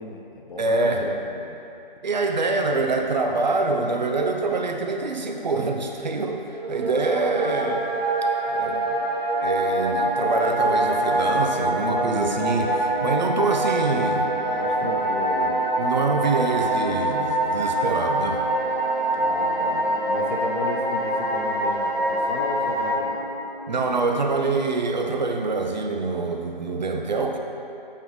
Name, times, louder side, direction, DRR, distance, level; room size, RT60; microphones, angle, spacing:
voice 1, 0.0-1.5 14.5-15.6 19.1-23.2, left 2 dB, 60° left, 0 dB, 1.0 m, -34 dB
voice 2, 0.6-1.1 2.0-6.4 6.7-7.9 8.4-9.0 9.4-14.3 14.8-14.9 15.8-18.4 23.7-27.4, right 3 dB, 50° right, 3 dB, 0.7 m, -25 dB
sound 1, 6.4-22.9, right 1 dB, 75° right, 1.6 m, -25 dB
sound 2, 8.9-24.3, right 2 dB, 30° right, 1.7 m, -38 dB
8.4 x 5.5 x 3.2 m, 2.8 s
figure-of-eight pair, 160°, 29 cm